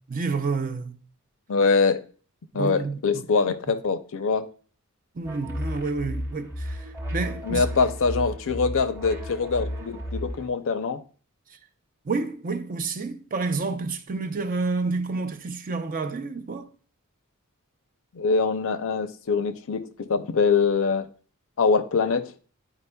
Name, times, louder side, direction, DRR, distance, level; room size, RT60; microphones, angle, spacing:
voice 1, 0.1-1.0 2.5-3.2 5.2-6.8 7.1-7.6 12.1-16.7, right 4 dB, 40° right, 0.5 m, -29 dB
voice 2, 1.5-2.0 2.5-4.5 7.4-11.0 18.1-21.1 21.6-22.3, left 5 dB, 60° left, 0.5 m, -24 dB
sound 1, 5.2-10.5, equal, 10° right, 0.9 m, -33 dB
9.8 x 4.9 x 2.2 m
head